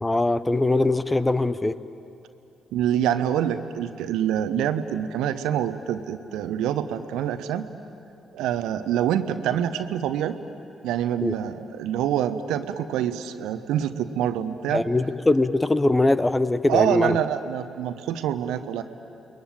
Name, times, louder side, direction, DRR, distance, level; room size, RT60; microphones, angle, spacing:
voice 1, 0.0-1.7 11.2-11.3 14.7-17.2, left 2 dB, 20° left, 14 dB, 1.1 m, -21 dB
voice 2, 2.7-7.7 8.3-10.4 10.8-14.8 16.7-18.8, right 10 dB, 70° right, 10 dB, 1.1 m, -26 dB
29.5 x 21.5 x 9.1 m, 2.9 s
hypercardioid pair, 45°, 0 cm